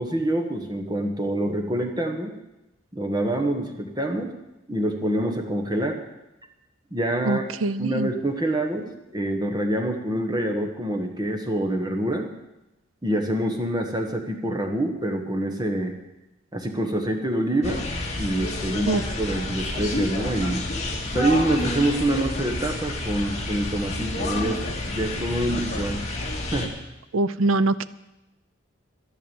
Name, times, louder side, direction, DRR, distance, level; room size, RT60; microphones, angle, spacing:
voice 1, 0.0-2.3 2.9-4.3 4.7-6.0 6.9-7.5 7.8-12.3 13.0-16.0 16.5-17.8 18.2-20.6 21.1-26.1 26.5-26.7, right 1 dB, 20° right, 4 dB, 1.4 m, -26 dB
voice 2, 7.3-8.1 18.9-19.0 27.1-27.8, right 2 dB, 80° right, 14 dB, 0.5 m, -23 dB
sound 1, 17.6-26.7, left 1 dB, 35° left, 2.2 m, -29 dB
12.0 x 11.0 x 7.1 m, 0.95 s
head